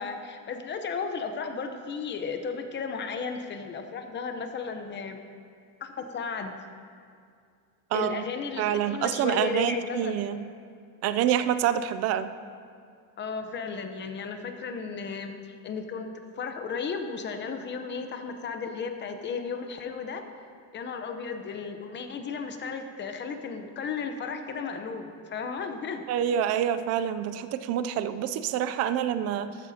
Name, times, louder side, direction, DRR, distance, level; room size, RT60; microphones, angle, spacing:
voice 1, 0.0-5.2 5.8-6.6 7.9-10.1 13.2-20.3 20.7-26.0, left 5 dB, 25° left, 6 dB, 0.8 m, -34 dB
voice 2, 7.9-8.2 8.6-10.5 11.0-12.3 26.1-29.6, right 10 dB, 40° right, 11 dB, 0.4 m, -27 dB
14.0 x 12.5 x 2.8 m, 2.3 s
cardioid pair, 150°, 44 cm